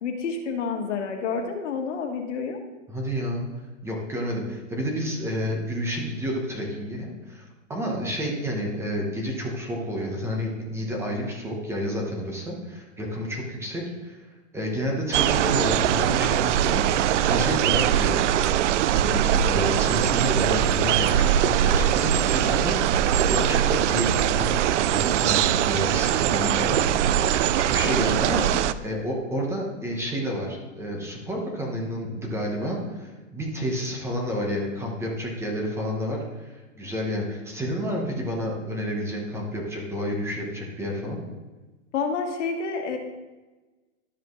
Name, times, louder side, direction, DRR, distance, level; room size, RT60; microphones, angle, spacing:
voice 1, 0.0-2.6 27.8-28.1 41.9-43.0, left 5 dB, 65° left, 3 dB, 1.6 m, -29 dB
voice 2, 2.9-3.4 3.8-14.2 14.5-18.2 19.0-24.6 24.9-26.9 27.6-41.2, equal, 5° right, -1 dB, 1.0 m, -30 dB
sound 1, 15.1-28.7, right 10 dB, 70° right, 0.5 m, -22 dB
12.5 x 5.1 x 3.1 m, 1.2 s
hypercardioid pair, 155°, 38 cm